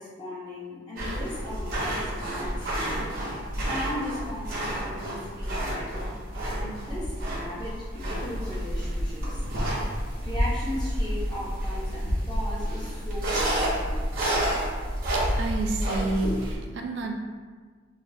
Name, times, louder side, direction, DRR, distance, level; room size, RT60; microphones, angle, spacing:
voice 1, 0.0-3.1 3.6-6.2 6.6-9.4 9.8-9.9 10.2-14.0, left 1 dB, 20° left, -8 dB, 0.5 m, -37 dB
sound 1, 1.0-16.6, equal, 50° right, 0.7 m, -29 dB
voice 2, 15.1-17.1, right 2 dB, 65° right, 3 dB, 0.3 m, -30 dB
3.2 x 2.3 x 2.6 m, 1.5 s
head